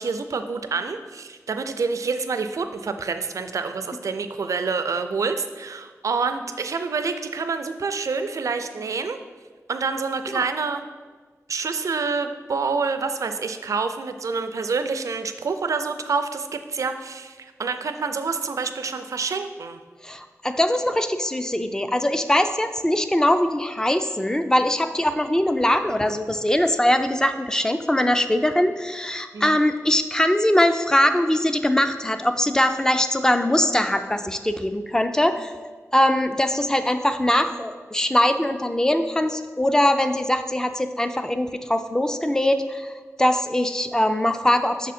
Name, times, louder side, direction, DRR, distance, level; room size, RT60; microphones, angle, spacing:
voice 1, 0.0-9.2 9.7-10.8 11.5-19.8 29.3-29.6, right 4 dB, 75° right, 8 dB, 0.4 m, -27 dB
voice 2, 20.0-35.5 35.9-44.9, left 1 dB, 10° left, 8 dB, 0.3 m, -22 dB
6.1 x 3.7 x 4.2 m, 1.5 s
wide cardioid pair, 105°, 6 cm